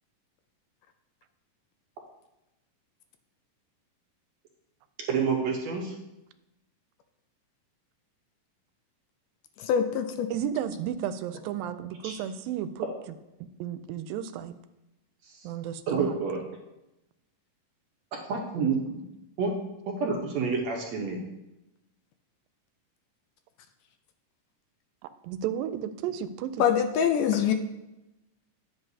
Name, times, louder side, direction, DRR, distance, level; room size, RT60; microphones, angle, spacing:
voice 1, 5.1-5.9 12.0-12.1 15.3-15.4 15.9-16.4 18.3-19.0 19.4-19.5 19.9-21.2, right 5 dB, 65° right, 0 dB, 1.8 m, -28 dB
voice 2, 9.6-10.3 26.6-27.5, left 8 dB, 80° left, 7 dB, 2.0 m, -24 dB
voice 3, 10.3-12.9 13.6-14.5 15.4-16.2 25.2-26.7, right 9 dB, 90° right, 11 dB, 2.3 m, -33 dB
11.0 x 7.8 x 2.7 m, 0.94 s
omnidirectional pair, 4.0 m